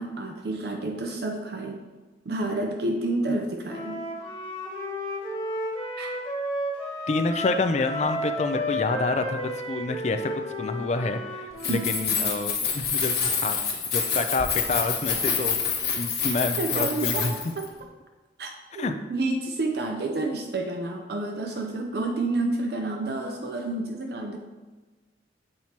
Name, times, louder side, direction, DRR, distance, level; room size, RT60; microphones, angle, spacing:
voice 1, 0.0-1.8 2.3-4.0 6.0-6.1 11.6-11.8 16.6-17.7 18.4-24.4, right 2 dB, 60° right, 3 dB, 0.4 m, -29 dB
Wind instrument woodwind instrument, 3.7-12.1, equal, 10° left, 1.7 m, -32 dB
voice 2, 7.1-10.3 10.6-13.1 13.4-13.6 13.9-15.6 16.0-17.3 18.8-18.9, left 3 dB, 40° left, 7 dB, 0.4 m, -28 dB
Keys jangling, 11.5-17.6, left 6 dB, 55° left, 1.1 m, -27 dB
7.5 x 4.4 x 2.8 m, 1.3 s
head